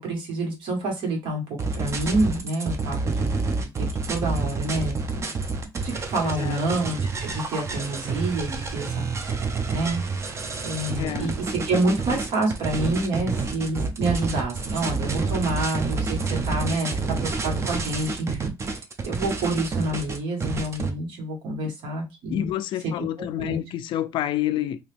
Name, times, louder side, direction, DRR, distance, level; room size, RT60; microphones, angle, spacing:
voice 1, 0.0-1.4 1.7-3.3 3.8-5.2 5.8-10.0 10.6-16.9 17.2-18.5 19.0-22.5 22.8-22.9 23.4-23.6, right 2 dB, 75° right, 1.6 m, -28 dB
sound 1, 1.6-20.9, right 4 dB, 35° right, 0.7 m, -28 dB
voice 2, 11.0-11.3 22.3-24.8, left 12 dB, 70° left, 0.4 m, -28 dB
2.9 x 2.8 x 3.3 m
cardioid pair, 105°, 9 cm